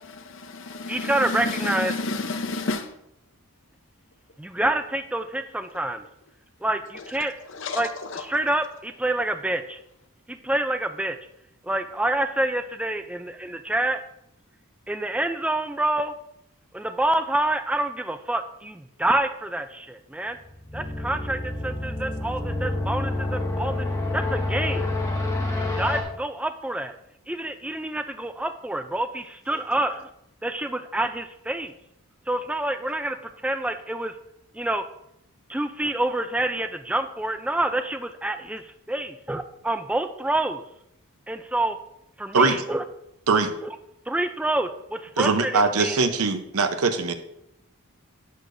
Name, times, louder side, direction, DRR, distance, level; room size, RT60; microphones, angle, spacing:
voice 1, 0.0-2.9 6.9-7.0 7.4-8.2, left 3 dB, 55° left, 8 dB, 0.7 m, -31 dB
voice 2, 0.9-1.9 4.4-6.0 6.6-7.4 7.8-7.9 8.2-9.8 10.3-11.2 11.6-14.0 14.9-16.1 16.7-20.4 20.7-23.9 24.1-24.9 25.6-26.9 27.3-30.1 30.4-31.7 32.3-33.2 33.4-34.1 34.5-34.8 35.5-40.6 41.3-41.8 42.2-42.8 44.1-46.0, right 1 dB, 5° right, 8 dB, 0.3 m, -27 dB
sound 1, 20.3-26.0, left 2 dB, 15° left, 1.1 m, -28 dB
voice 3, 45.2-47.1, right 4 dB, 85° right, 9 dB, 0.8 m, -21 dB
11.0 x 6.6 x 2.6 m, 0.80 s
head